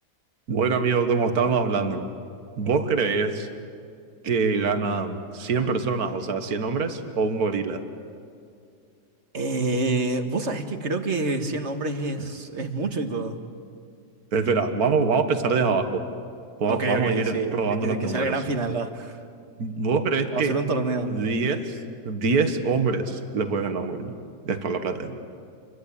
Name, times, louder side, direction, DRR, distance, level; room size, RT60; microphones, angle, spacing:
voice 1, 0.5-2.1 2.6-3.5 4.2-7.8 14.3-16.0 16.6-18.3 19.6-20.5 21.1-21.8 22.1-24.1 24.5-25.2, right 4 dB, 65° right, 7 dB, 2.0 m, -24 dB
voice 2, 9.3-13.4 16.7-19.2 20.3-21.1, right 3 dB, 45° right, 6 dB, 1.9 m, -27 dB
28.0 x 23.0 x 8.6 m, 2.4 s
omnidirectional pair, 1.7 m